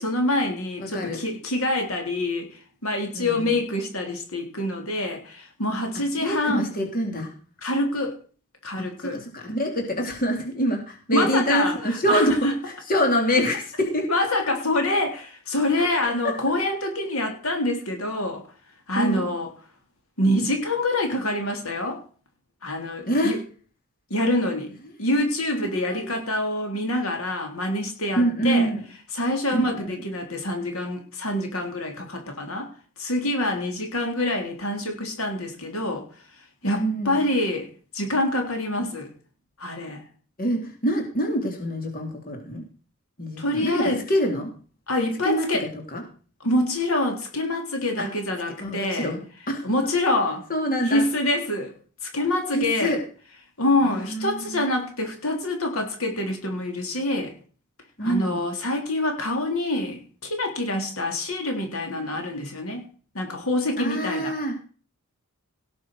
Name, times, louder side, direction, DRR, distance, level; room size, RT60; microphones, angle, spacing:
voice 1, 0.0-6.6 7.6-8.2 8.6-9.2 11.1-12.5 14.1-18.4 18.9-19.5 20.2-22.0 22.6-23.4 24.1-24.7 25.0-28.7 29.1-32.7 33.0-36.1 36.4-37.7 37.9-39.1 39.6-40.0 43.4-44.0 44.9-45.7 46.4-49.1 49.6-50.4 50.9-51.7 52.0-53.0 53.6-57.3 58.0-62.9 63.1-64.3, left 1 dB, 70° left, 3 dB, 3.7 m, -26 dB
voice 2, 0.8-1.2 3.1-3.6 6.2-7.3 8.8-12.4 12.6-14.1 15.8-16.3 18.9-19.3 23.1-23.3 25.7-26.2 28.1-28.8 29.5-30.1 36.6-37.3 40.4-42.6 43.2-44.5 45.2-46.0 48.0-48.1 48.6-49.2 49.5-49.7 50.5-51.0 52.5-53.0 53.8-54.7 58.0-58.4 63.8-64.6, equal, 40° left, 2 dB, 3.5 m, -26 dB
18.0 x 7.1 x 6.6 m, 0.40 s
head